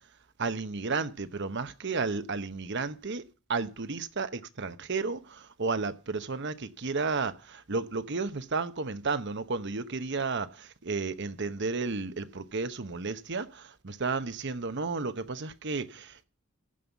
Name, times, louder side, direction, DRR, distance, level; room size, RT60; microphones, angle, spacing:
voice 1, 0.4-16.2, right 4 dB, 60° right, 1.0 m, -33 dB
15.0 x 5.6 x 8.1 m
head